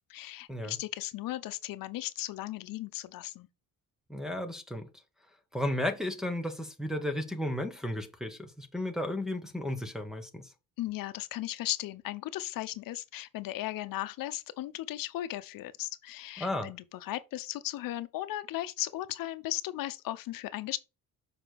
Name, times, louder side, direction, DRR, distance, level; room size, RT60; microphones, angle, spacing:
voice 1, 0.1-3.5 10.8-20.8, left 15 dB, 75° left, 0.8 m, -36 dB
voice 2, 4.1-4.9 5.5-10.4 16.4-16.7, left 1 dB, ahead, 1.1 m, -34 dB
7.0 x 5.2 x 4.7 m
cardioid pair, 160°, 34 cm